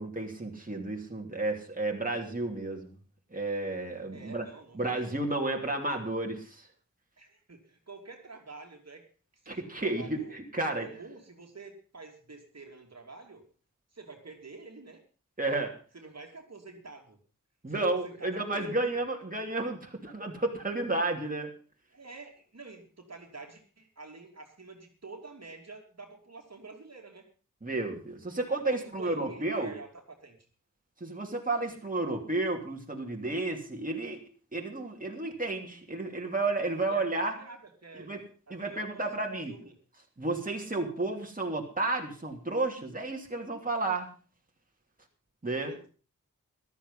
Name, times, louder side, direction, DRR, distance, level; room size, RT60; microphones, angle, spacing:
voice 1, 0.0-2.9 3.3-4.5 4.7-6.7 9.5-10.9 15.4-15.8 17.6-21.5 27.6-29.7 31.0-34.2 34.5-37.3 38.0-38.2 38.5-39.5 40.2-44.1 45.4-45.8, right 2 dB, 25° right, 1 dB, 3.0 m, -32 dB
voice 2, 4.1-5.1 5.9-6.0 7.2-9.1 9.3-10.4 10.8-13.4 13.9-15.0 15.9-17.2 17.7-19.0 21.9-27.3 28.7-30.4 36.9-37.0 37.3-38.1 38.5-39.1 39.5-39.7 45.7-45.9, right 3 dB, 55° right, 2 dB, 2.8 m, -48 dB
14.0 x 12.5 x 5.5 m, 0.38 s
wide cardioid pair, 65°, 32 cm